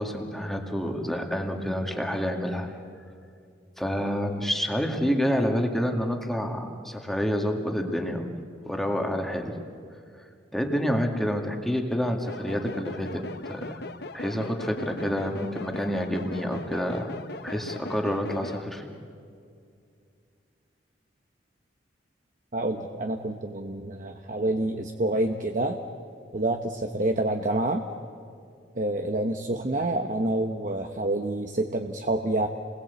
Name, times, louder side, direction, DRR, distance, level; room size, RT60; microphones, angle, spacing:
voice 1, 0.0-2.7 3.8-9.6 10.5-13.8 14.1-18.9, equal, ahead, 3 dB, 2.1 m, -28 dB
sound 1, 12.3-18.6, left 2 dB, 60° left, 1.0 m, -39 dB
voice 2, 22.5-25.8 26.3-27.9 28.8-32.5, right 1 dB, 45° right, 4 dB, 1.1 m, -27 dB
30.0 x 21.0 x 8.3 m, 2.3 s
head